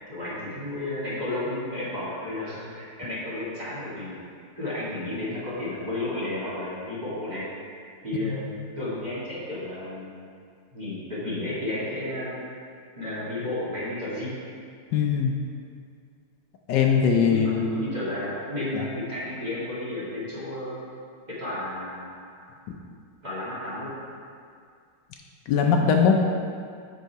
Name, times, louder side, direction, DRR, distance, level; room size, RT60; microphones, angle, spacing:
voice 1, 0.1-4.2 4.6-7.5 8.0-8.5 8.8-10.2 10.7-12.3 13.0-14.4 17.0-20.8 21.4-22.3 23.2-24.0, left 1 dB, 25° right, -10 dB, 2.2 m, -32 dB
voice 2, 14.9-15.3 16.7-17.7 25.5-26.2, left 6 dB, 75° left, 2 dB, 1.2 m, -20 dB
6.7 x 5.6 x 4.6 m, 2.2 s
omnidirectional pair, 2.0 m